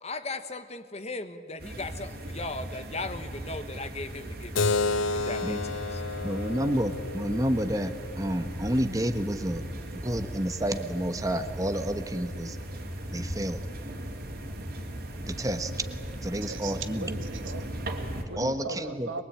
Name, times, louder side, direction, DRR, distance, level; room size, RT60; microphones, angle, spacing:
voice 1, 0.0-4.8 5.1-6.0, left 2 dB, 35° left, 10 dB, 1.2 m, -37 dB
sound 1, 1.6-18.2, right 1 dB, 50° right, 2.9 m, -38 dB
Keyboard (musical), 4.5-9.7, left 3 dB, 80° left, 0.8 m, -32 dB
voice 2, 6.2-9.6 9.9-12.6 13.1-13.6 15.3-15.7 16.2-17.1 18.4-19.2, equal, 15° right, 8 dB, 1.2 m, -30 dB
voice 3, 16.4-19.2, right 4 dB, 80° right, 7 dB, 1.8 m, -39 dB
23.0 x 22.5 x 8.8 m, 2.2 s
head